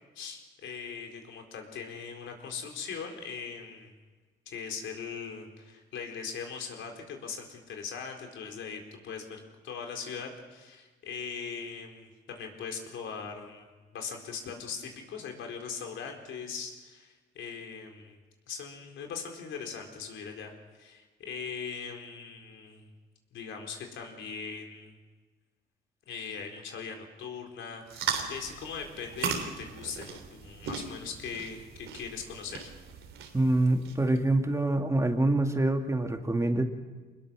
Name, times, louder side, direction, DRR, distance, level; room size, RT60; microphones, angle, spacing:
voice 1, 0.1-3.9 4.5-18.2 18.5-20.5 20.8-22.9 23.3-24.9 26.1-32.7, left 6 dB, 75° left, 3 dB, 4.4 m, -40 dB
sound 1, 27.9-34.2, right 6 dB, 80° right, 3.1 m, -38 dB
voice 2, 33.3-36.6, right 2 dB, 15° right, 4 dB, 2.2 m, -25 dB
25.0 x 21.0 x 6.3 m, 1.3 s
cardioid pair, 90°, 20 cm